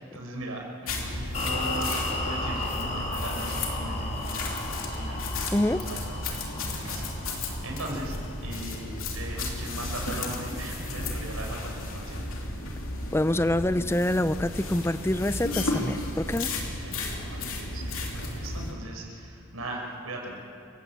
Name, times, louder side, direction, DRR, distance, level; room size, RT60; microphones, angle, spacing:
voice 1, 0.1-8.2 8.4-12.4 16.5-20.3, right 1 dB, 75° right, -1 dB, 5.5 m, -39 dB
sound 1, 0.9-18.7, left 2 dB, 70° left, 3.0 m, -33 dB
sound 2, 1.3-8.5, left 2 dB, 30° left, 3.0 m, -35 dB
voice 2, 5.5-5.9 13.1-16.5, left 1 dB, 10° left, 13 dB, 0.5 m, -26 dB
28.5 x 16.0 x 7.6 m, 2.5 s
head